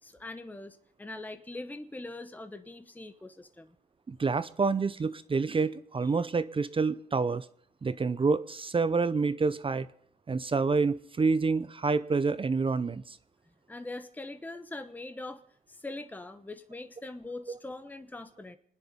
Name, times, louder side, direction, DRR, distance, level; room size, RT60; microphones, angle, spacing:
voice 1, 0.0-3.8 13.5-15.4 15.7-18.6, left 2 dB, 10° left, 9 dB, 1.0 m, -42 dB
voice 2, 4.1-7.5 7.8-9.9 10.3-13.2 17.5-17.6, right 4 dB, 25° right, 15 dB, 0.7 m, -28 dB
26.0 x 10.0 x 5.3 m, 0.64 s
cardioid pair, 90°, 20 cm